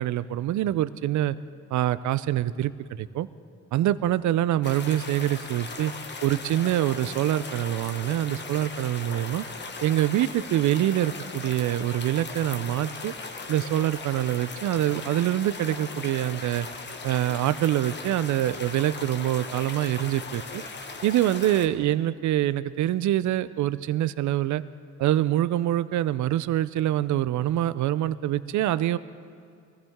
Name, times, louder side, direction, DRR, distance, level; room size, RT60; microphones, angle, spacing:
voice 1, 0.0-1.4 1.7-3.3 3.7-5.9 6.2-9.4 9.8-13.1 13.5-16.7 17.0-20.6 21.0-24.6 25.0-29.0, right 13 dB, 70° right, 15 dB, 0.6 m, -25 dB
sound 1, 4.6-21.7, left 4 dB, 35° left, 1.2 m, -38 dB
22.5 x 14.5 x 3.6 m, 2.3 s
cardioid pair, 90°, 30 cm